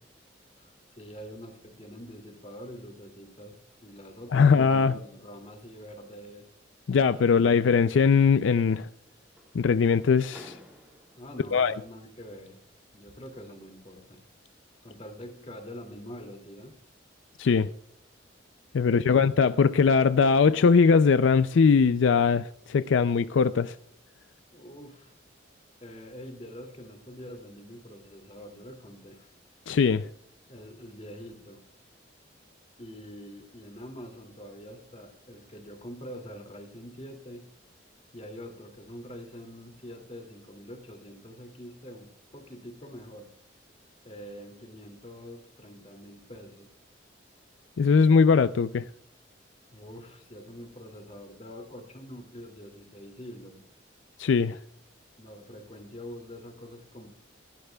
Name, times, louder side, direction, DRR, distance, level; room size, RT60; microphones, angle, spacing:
voice 1, 0.6-6.5 11.2-12.6 12.9-14.2 14.8-16.7 18.8-19.3 24.5-25.1 25.8-29.3 30.5-31.6 32.8-37.5 38.1-43.3 44.0-46.7 49.7-53.6 55.2-57.1, equal, 35° left, 2.4 m, -45 dB
voice 2, 4.3-4.9 6.9-8.9 9.5-10.5 11.5-11.7 17.4-17.7 18.7-23.7 29.7-30.1 47.8-48.9 54.2-54.6, left 5 dB, 80° left, 0.4 m, -21 dB
sound 1, 9.1-11.6 12.8-14.7 15.1-15.4 15.8-16.1, equal, 10° right, 2.5 m, -54 dB
25.5 x 11.5 x 2.3 m
head